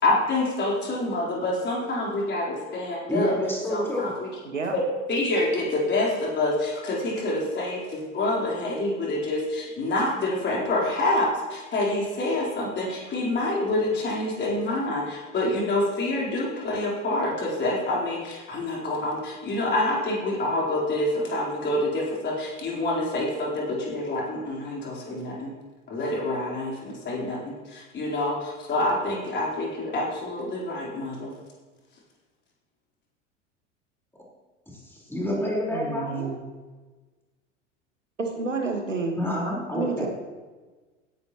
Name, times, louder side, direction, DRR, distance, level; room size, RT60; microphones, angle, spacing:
voice 1, 0.0-3.3 3.7-4.1 4.7-4.8 5.1-25.5 25.9-31.3, left 2 dB, 30° left, -4 dB, 4.1 m, -27 dB
voice 2, 3.1-4.1 34.7-36.3 39.2-40.1, left 1 dB, 5° left, -4 dB, 4.5 m, -28 dB
voice 3, 35.7-36.4 38.2-39.2 39.7-40.1, right 4 dB, 80° right, 3 dB, 1.6 m, -29 dB
16.5 x 10.5 x 3.1 m, 1.3 s
figure-of-eight pair, 75°, 37 cm